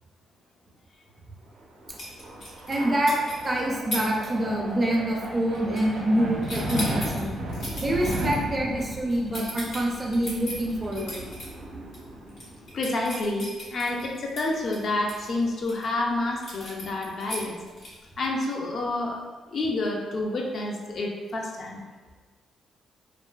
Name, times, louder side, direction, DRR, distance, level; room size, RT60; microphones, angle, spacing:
sound 1, 1.6-12.9, right 1 dB, 90° right, 0.5 m, -35 dB
sound 2, 2.0-2.8 3.1-3.5 3.9-4.3 4.6-4.9 5.1-6.1 6.4-11.5 11.9-12.0 12.3-15.8 16.4-18.1, left 1 dB, 80° left, 1.0 m, -37 dB
voice 1, 2.7-3.1 3.4-7.3 7.8-11.2, right 1 dB, 25° right, -1 dB, 0.4 m, -26 dB
voice 2, 12.7-19.2 19.5-21.8, left 2 dB, 50° left, 0 dB, 0.4 m, -29 dB
2.6 x 2.3 x 2.2 m, 1.3 s
cardioid pair, 125°, 0 cm